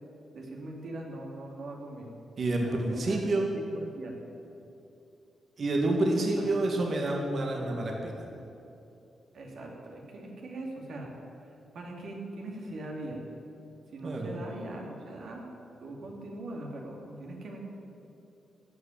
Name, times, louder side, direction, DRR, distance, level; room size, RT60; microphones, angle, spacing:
voice 1, 0.3-2.1 2.6-3.2 3.5-4.1 6.4-6.6 9.3-11.1 11.7-13.2 13.9-15.5 15.8-17.6, right 2 dB, 70° right, -1 dB, 2.7 m, -41 dB
voice 2, 2.4-3.5 5.6-8.1 14.0-14.3, right 2 dB, 50° right, 0 dB, 1.8 m, -28 dB
15.0 x 6.0 x 9.9 m, 2.8 s
cardioid pair, 105°, 0 cm